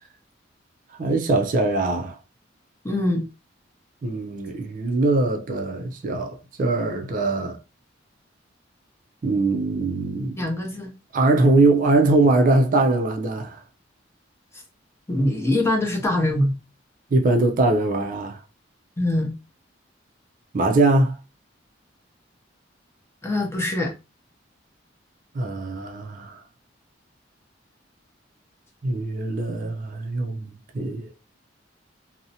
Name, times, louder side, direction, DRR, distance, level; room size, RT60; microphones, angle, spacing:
voice 1, 1.0-2.2 4.0-7.6 9.2-10.4 11.1-13.6 17.1-18.4 20.5-21.2 25.3-26.4 28.8-31.1, right 2 dB, 45° right, 0.4 m, -22 dB
voice 2, 2.8-3.2 10.4-10.9 15.1-16.6 19.0-19.3 23.2-23.9, left 1 dB, 15° left, 0.6 m, -23 dB
2.5 x 2.0 x 2.7 m
head